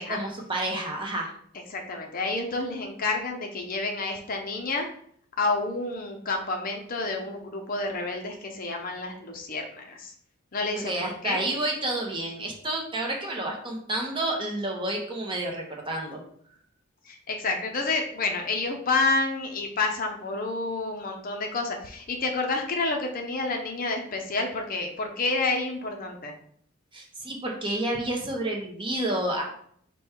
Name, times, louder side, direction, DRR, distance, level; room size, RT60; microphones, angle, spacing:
voice 1, 0.1-1.3 10.8-16.2 26.9-29.4, right 1 dB, 25° right, 0 dB, 0.8 m, -30 dB
voice 2, 1.7-4.9 5.4-10.1 10.5-11.4 17.1-26.3, left 3 dB, 40° left, 3 dB, 0.5 m, -29 dB
5.2 x 2.3 x 4.2 m, 0.64 s
head